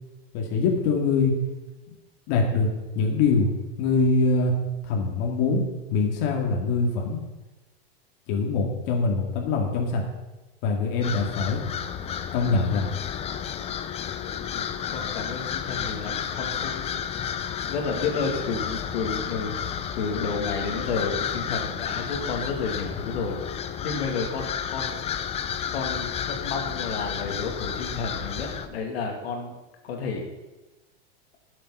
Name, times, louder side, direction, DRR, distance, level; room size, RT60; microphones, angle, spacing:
voice 1, 0.3-1.3 2.3-2.7 2.9-3.5 3.8-4.5 4.9-5.6 5.9-7.2 8.3-10.0 10.6-11.6 12.3-12.9, left 4 dB, 50° left, 1 dB, 2.3 m, -23 dB
sound 1, 11.0-28.7, left 8 dB, 20° left, 0.6 m, -32 dB
voice 2, 14.4-17.3 17.6-23.4 23.8-25.1 25.7-29.6 29.8-30.3, left 4 dB, 75° left, 2 dB, 2.3 m, -31 dB
11.0 x 7.6 x 5.6 m, 1.1 s
supercardioid pair, 135°, 31 cm